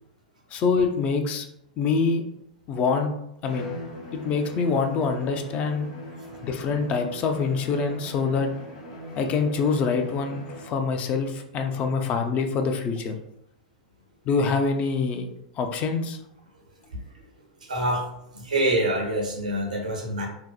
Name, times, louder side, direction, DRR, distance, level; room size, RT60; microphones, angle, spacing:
voice 1, 0.5-1.5 1.8-2.2 2.7-3.1 3.4-3.7 4.1-5.9 6.4-8.5 9.2-13.2 14.3-15.3 15.6-16.2, left 4 dB, 35° left, 5 dB, 0.3 m, -25 dB
Bowed string instrument, 3.4-10.9, left 1 dB, 65° left, 0.7 m, -40 dB
voice 2, 17.6-18.1 18.3-20.3, right 1 dB, 85° right, 1 dB, 0.6 m, -26 dB
2.7 x 2.0 x 2.3 m, 0.77 s
hypercardioid pair, 100°, 4 cm